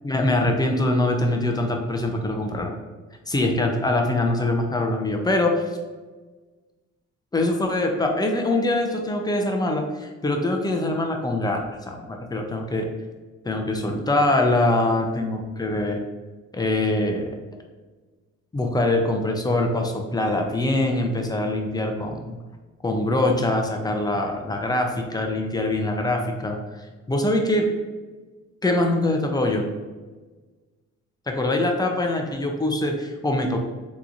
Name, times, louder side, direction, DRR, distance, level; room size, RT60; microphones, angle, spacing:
voice 1, 0.0-2.8 3.3-5.7 7.3-12.9 13.4-16.0 16.5-17.3 18.5-22.4 22.8-26.6 27.1-27.7 28.6-29.6 31.3-33.6, left 2 dB, 15° left, 2 dB, 0.5 m, -23 dB
3.7 x 3.0 x 2.5 m, 1.3 s
cardioid pair, 90°, 30 cm